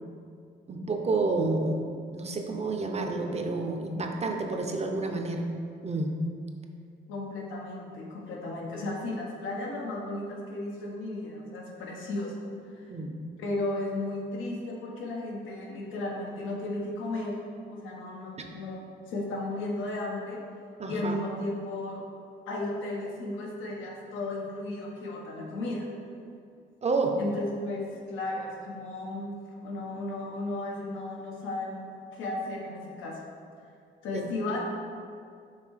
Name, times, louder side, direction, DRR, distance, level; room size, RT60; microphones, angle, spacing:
voice 1, 0.7-1.8 2.1-5.4 5.8-6.1 12.9-13.2 20.8-21.2 26.8-27.2 34.1-34.3, right 3 dB, 35° right, 3 dB, 0.7 m, -29 dB
voice 2, 7.1-12.4 12.7-12.9 13.4-17.4 17.7-20.4 20.9-22.0 22.5-25.9 27.2-31.9 32.1-33.2 34.0-34.6, left 2 dB, 90° left, -1 dB, 1.1 m, -34 dB
5.9 x 3.6 x 4.7 m, 2.3 s
cardioid pair, 90°, 20 cm